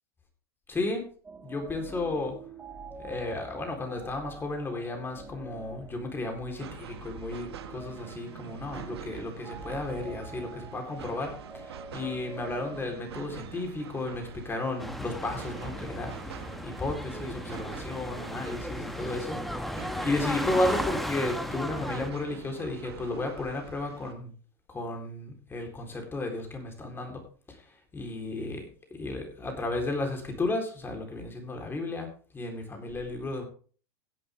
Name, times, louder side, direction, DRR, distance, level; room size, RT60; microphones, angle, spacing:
voice 1, 0.7-1.0 1.4-2.4 3.0-24.3 24.7-27.2 27.5-28.6 28.9-32.1 32.3-33.4, left 2 dB, 15° left, 3 dB, 4.0 m, -33 dB
sound 1, 1.2-13.0, right 4 dB, 15° right, 2.4 m, -46 dB
sound 2, 6.6-24.1, right 9 dB, 90° right, 1.6 m, -45 dB
sound 3, 14.8-22.1, equal, ahead, 1.1 m, -35 dB
16.5 x 8.3 x 3.6 m, 0.41 s
hypercardioid pair, 115°, 13 cm